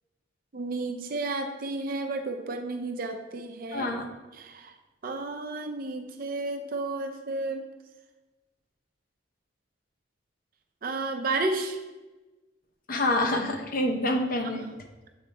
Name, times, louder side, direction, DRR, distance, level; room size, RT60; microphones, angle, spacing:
voice 1, 0.5-3.9 4.4-4.7 5.0-7.7 10.8-11.8 14.5-14.6, right 2 dB, 50° right, 5 dB, 0.6 m, -32 dB
voice 2, 3.7-4.1 12.9-14.7, left 1 dB, 50° left, 4 dB, 0.7 m, -27 dB
8.0 x 4.0 x 3.4 m, 1.2 s
head